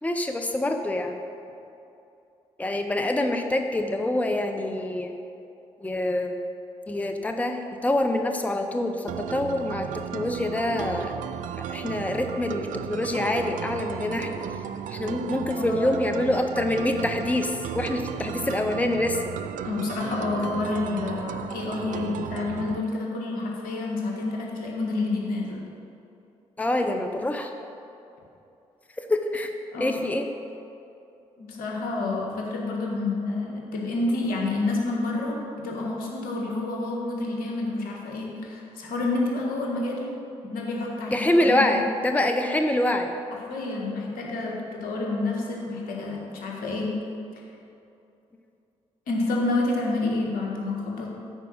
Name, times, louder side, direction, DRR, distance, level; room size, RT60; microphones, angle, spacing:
voice 1, 0.0-1.2 2.6-5.1 5.8-6.4 6.9-11.2 11.6-14.4 14.9-19.3 26.6-27.5 29.0-29.5 29.8-30.3 41.1-43.1, left 1 dB, 10° left, 5 dB, 0.7 m, -26 dB
sound 1, 9.1-22.8, right 10 dB, 60° right, 0.4 m, -35 dB
voice 2, 15.2-15.9 19.6-25.7 29.7-30.0 31.4-40.1 40.4-41.7 43.5-46.9 47.4-47.5 49.1-51.1, left 2 dB, 70° left, -1 dB, 1.6 m, -29 dB
9.9 x 4.7 x 6.3 m, 2.7 s
hypercardioid pair, 40°, 15 cm